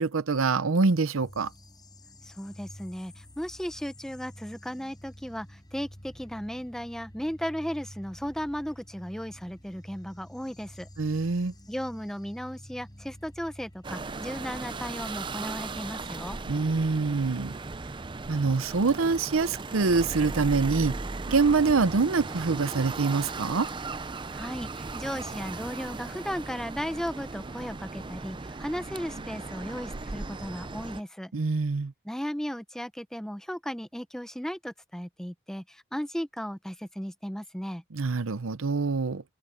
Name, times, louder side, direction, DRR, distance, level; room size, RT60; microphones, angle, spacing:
voice 1, 0.0-1.5 11.0-11.5 16.5-17.5 18.3-21.0 21.3-23.7 31.3-31.9 37.9-39.2, right 4 dB, 80° right, 0.7 m, -25 dB
sound 1, 1.2-14.0, equal, 20° left, 4.8 m, -49 dB
voice 2, 2.2-10.9 11.7-16.4 24.3-31.3 32.0-37.8, equal, 5° left, 0.9 m, -35 dB
sound 2, 13.8-31.0, right 3 dB, 25° right, 0.5 m, -37 dB
head